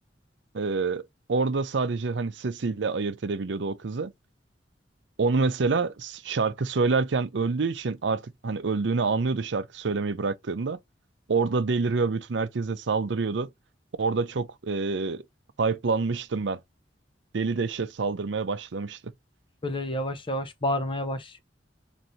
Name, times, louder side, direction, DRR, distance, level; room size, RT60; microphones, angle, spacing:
voice 1, 0.5-4.1 5.2-10.8 11.3-13.5 14.0-15.2 15.6-16.6 17.3-19.1, right 4 dB, 70° right, 0.6 m, -27 dB
voice 2, 19.6-21.4, left 1 dB, 30° left, 0.7 m, -29 dB
4.1 x 2.6 x 3.0 m
head